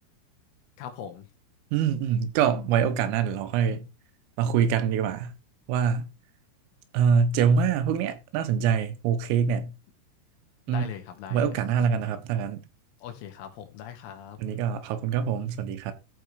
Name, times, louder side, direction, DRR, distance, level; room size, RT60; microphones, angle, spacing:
voice 1, 0.8-1.3 10.7-11.5 13.0-14.4, left 9 dB, 75° left, 4.1 m, -40 dB
voice 2, 1.7-3.9 4.4-5.3 5.7-6.1 6.9-9.7 10.7-10.9 11.3-12.7 14.4-15.9, right 7 dB, 85° right, 3.9 m, -24 dB
14.0 x 5.1 x 4.9 m
omnidirectional pair, 5.8 m